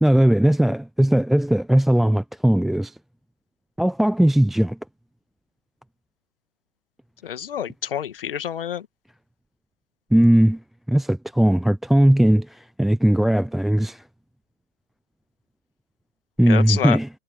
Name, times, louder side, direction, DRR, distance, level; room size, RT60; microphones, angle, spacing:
voice 1, 0.0-3.0 3.8-4.8 10.1-10.6 10.9-14.0 16.4-17.1, right 1 dB, ahead, 0.4 m, -18 dB
voice 2, 7.2-8.9 16.5-17.0, left 9 dB, 65° left, 2.0 m, -28 dB
figure-of-eight pair, 105°, 30 cm